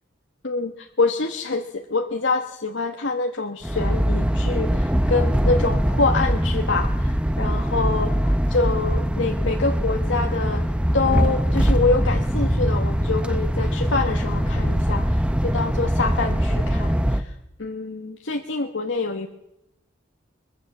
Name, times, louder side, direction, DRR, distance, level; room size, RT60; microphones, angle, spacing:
voice 1, 0.4-10.6 10.9-17.3 17.6-19.3, left 3 dB, 70° left, 4 dB, 1.2 m, -26 dB
sound 1, 3.6-17.2, equal, 5° right, 0.8 m, -22 dB
22.0 x 22.0 x 7.2 m, 0.86 s
head